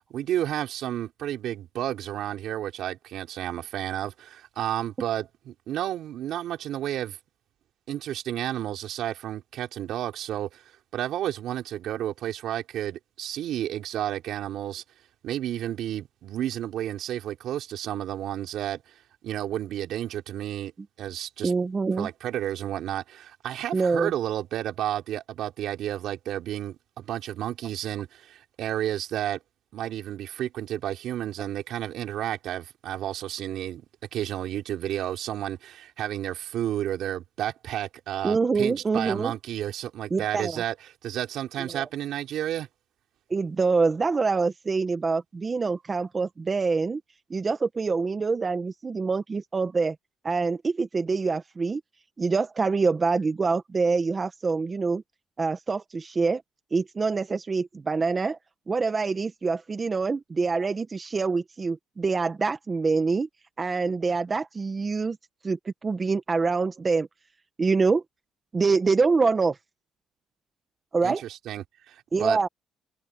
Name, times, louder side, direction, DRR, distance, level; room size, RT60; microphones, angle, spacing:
voice 1, 0.1-7.2 7.9-10.6 10.9-14.8 15.2-18.8 19.2-20.7 21.0-21.5 22.0-29.4 29.7-33.8 34.1-42.7 71.0-72.4, right 12 dB, 80° right, 3.9 m, -31 dB
voice 2, 21.4-22.1 23.7-24.1 38.2-39.3 40.1-40.6 41.7-41.8 43.3-47.0 47.3-49.9 50.2-51.8 52.2-55.0 55.4-56.4 56.7-58.4 58.7-63.3 63.6-65.2 65.4-67.1 67.6-68.0 68.5-69.5 70.9-71.2 72.1-72.5, right 4 dB, 30° right, 1.5 m, -25 dB
cardioid pair, 90°, 0 cm